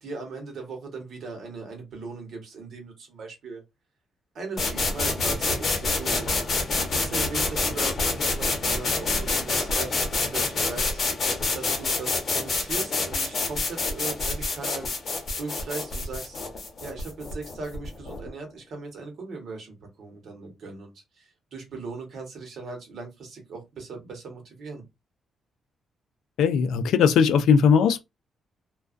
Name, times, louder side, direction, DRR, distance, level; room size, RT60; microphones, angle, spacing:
voice 1, 0.0-3.6 4.3-6.3 6.9-11.0 11.5-15.0 15.4-16.4 16.8-24.8, right 4 dB, 55° right, 1.0 m, -38 dB
sound 1, 4.6-18.3, left 3 dB, 35° left, 0.8 m, -27 dB
voice 2, 26.4-28.0, left 6 dB, 80° left, 0.3 m, -19 dB
2.3 x 2.3 x 2.4 m
cardioid pair, 155°, 0 cm